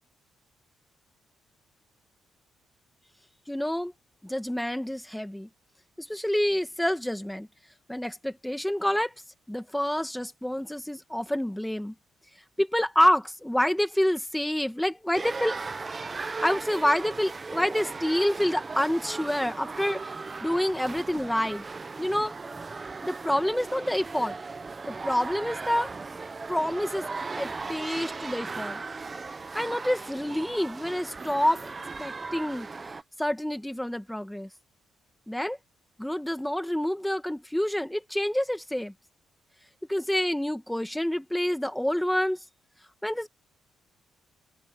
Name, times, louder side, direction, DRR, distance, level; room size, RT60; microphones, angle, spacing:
voice 1, 3.5-3.9 4.2-5.5 6.0-7.5 7.9-9.1 9.5-11.9 12.6-15.6 16.1-20.0 20.4-21.6 22.0-22.3 23.0-24.3 24.9-25.9 26.5-27.1 27.4-28.8 29.5-31.7 32.0-32.7 33.2-34.5 35.3-35.6 36.0-38.9 39.9-42.4 43.0-43.3, equal, 5° left, 2.3 m, -27 dB
sound 1, 15.1-33.0, right 4 dB, 30° right, 1.0 m, -37 dB
cardioid pair, 90°, 0 cm